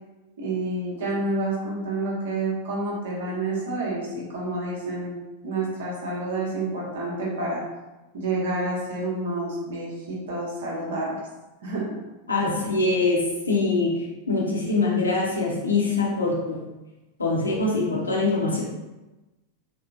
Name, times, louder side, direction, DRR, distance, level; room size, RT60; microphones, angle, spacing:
voice 1, 0.4-5.1 5.4-7.6 8.1-11.2 11.6-11.9, right 2 dB, 60° right, -4 dB, 0.8 m, -29 dB
voice 2, 12.3-13.9 14.3-16.6 17.2-18.6, left 3 dB, 75° left, -3 dB, 0.6 m, -23 dB
2.9 x 2.0 x 2.4 m, 1.1 s
figure-of-eight pair, 90°, 0 cm